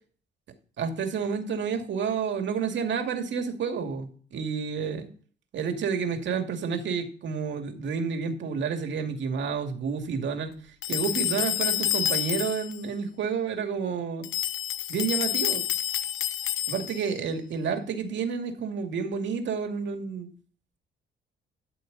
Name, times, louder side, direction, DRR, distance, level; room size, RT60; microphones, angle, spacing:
voice 1, 0.8-5.1 5.5-10.5 10.9-14.3 14.9-15.6 16.7-20.3, right 6 dB, 65° right, 5 dB, 2.4 m, -30 dB
sound 1, 10.8-12.8 14.2-17.1, left 11 dB, 90° left, 0.9 m, -28 dB
13.0 x 6.6 x 4.1 m, 0.42 s
cardioid pair, 90°, 20 cm